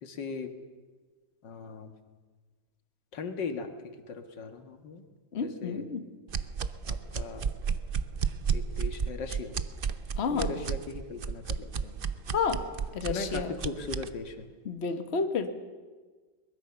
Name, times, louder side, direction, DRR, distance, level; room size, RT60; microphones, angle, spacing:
voice 1, 0.0-0.5 1.4-1.9 3.1-5.0 5.4-5.8 6.8-7.5 8.5-9.5 10.3-12.0 13.0-14.5, left 4 dB, 85° left, 7 dB, 2.2 m, -38 dB
voice 2, 5.3-6.0 10.2-10.5 12.3-12.6 12.9-13.5 14.6-15.5, left 5 dB, 40° left, 7 dB, 1.6 m, -30 dB
sound 1, 6.3-14.1, right 6 dB, 50° right, 0.6 m, -32 dB
23.0 x 21.0 x 6.9 m, 1.4 s
omnidirectional pair, 1.9 m